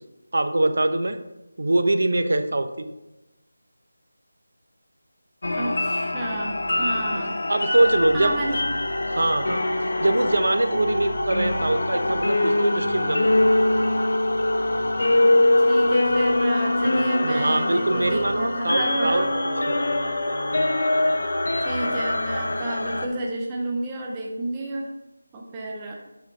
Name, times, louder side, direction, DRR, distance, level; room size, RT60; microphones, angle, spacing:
voice 1, 0.3-1.2 1.6-2.9 7.1-8.6 9.1-9.6 10.0-13.4 17.2-19.8, right 2 dB, 60° right, 9 dB, 0.7 m, -23 dB
sound 1, 5.4-23.1, left 1 dB, 55° left, 0.8 m, -23 dB
voice 2, 5.5-7.4 8.1-8.7 15.0-15.1 15.6-19.3 21.6-24.9 25.3-25.9, right 1 dB, 10° right, -2 dB, 0.4 m, -31 dB
8.2 x 4.9 x 3.9 m, 0.99 s
figure-of-eight pair, 180°, 0 cm